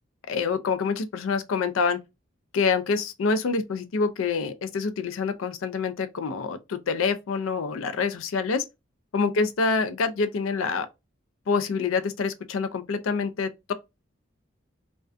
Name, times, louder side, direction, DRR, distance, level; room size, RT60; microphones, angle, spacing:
voice 1, 0.3-2.0 2.5-8.7 9.1-10.9 11.5-13.7, left 4 dB, 90° left, 0.4 m, -26 dB
2.4 x 2.2 x 2.4 m
head